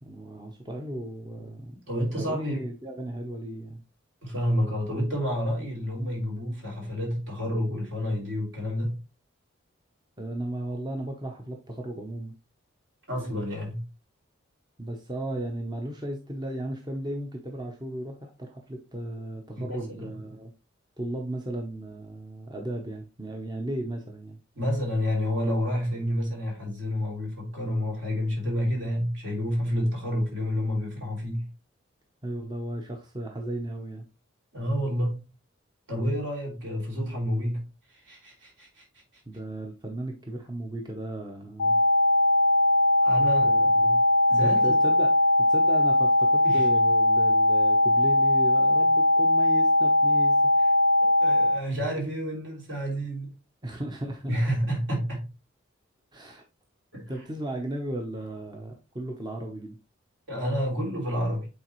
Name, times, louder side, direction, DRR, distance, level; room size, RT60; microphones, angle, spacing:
voice 1, 0.0-1.7 2.2-3.8 10.2-12.3 14.8-20.5 21.0-24.4 32.2-34.1 39.3-41.8 43.4-44.0 44.4-50.4 53.6-54.3 56.1-56.4 57.1-59.8, right 1 dB, 20° right, 0.8 m, -35 dB
voice 2, 1.7-2.7 4.2-9.0 13.1-13.8 19.5-20.1 24.5-31.5 34.5-35.2 35.9-37.6 37.9-38.8 43.0-43.7 44.3-44.8 46.4-46.7 51.0-53.3 54.3-55.3 56.9-57.1 60.3-61.5, equal, 65° right, 3.4 m, -29 dB
sound 1, 41.6-51.6, left 1 dB, 75° left, 0.5 m, -20 dB
8.4 x 4.0 x 3.0 m
head